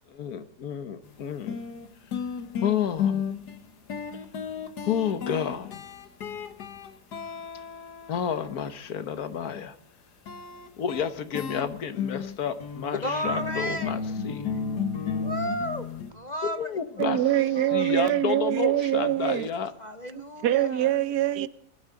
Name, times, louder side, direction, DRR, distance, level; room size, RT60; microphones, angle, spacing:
voice 1, 0.1-1.6 2.6-3.2 4.8-5.8 8.1-9.8 10.8-14.5 16.4-17.2 17.7-19.7, left 8 dB, 70° left, 1.6 m, -30 dB
sound 1, 1.0-1.1 1.5-8.7 10.3-16.1, left 6 dB, 90° left, 1.9 m, -33 dB
voice 2, 13.0-13.9 15.2-15.9 16.1-17.2 17.5-17.9 19.8-20.9, equal, 40° left, 0.6 m, -33 dB
voice 3, 17.0-19.5 20.1-21.5, right 12 dB, 80° right, 1.4 m, -24 dB
21.5 x 12.0 x 3.9 m
omnidirectional pair, 1.7 m